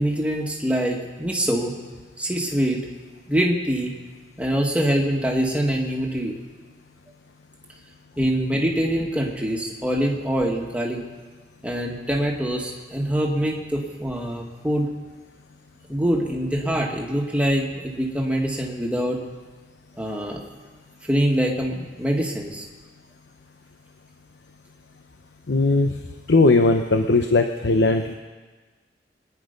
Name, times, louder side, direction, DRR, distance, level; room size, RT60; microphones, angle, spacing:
voice 1, 0.0-1.7 2.2-2.8 3.3-3.9 4.4-6.3 8.2-11.0 11.6-14.9 15.9-19.2 20.0-20.4 21.1-22.7, equal, 5° right, -1 dB, 1.9 m, -24 dB
voice 2, 25.5-25.9 26.3-28.1, left 3 dB, 85° left, 6 dB, 0.8 m, -18 dB
24.0 x 10.0 x 5.3 m, 1.4 s
head